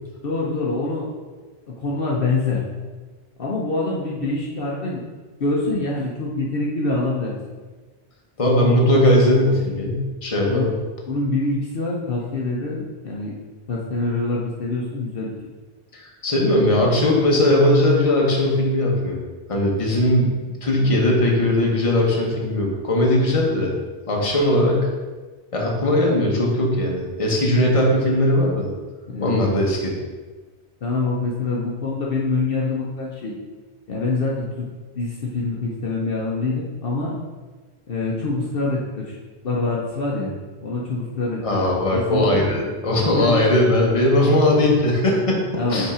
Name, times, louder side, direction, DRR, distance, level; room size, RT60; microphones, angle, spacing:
voice 1, 0.2-1.1 1.7-2.6 3.4-5.0 5.4-7.3 10.5-10.7 11.1-13.3 13.7-15.3 20.8-20.9 29.1-29.3 30.8-33.3 33.9-34.7 34.9-37.1 37.9-39.2 39.4-40.3 40.6-42.4 43.1-43.3 44.2-44.3 45.6-45.9, left 3 dB, 60° left, -4 dB, 1.0 m, -25 dB
voice 2, 8.4-10.7 15.9-19.2 19.5-23.7 24.1-24.9 25.5-28.7 29.2-30.0 41.4-45.4 45.7-45.9, left 1 dB, 30° left, -2 dB, 1.1 m, -19 dB
5.3 x 4.1 x 4.9 m, 1.3 s
omnidirectional pair, 1.1 m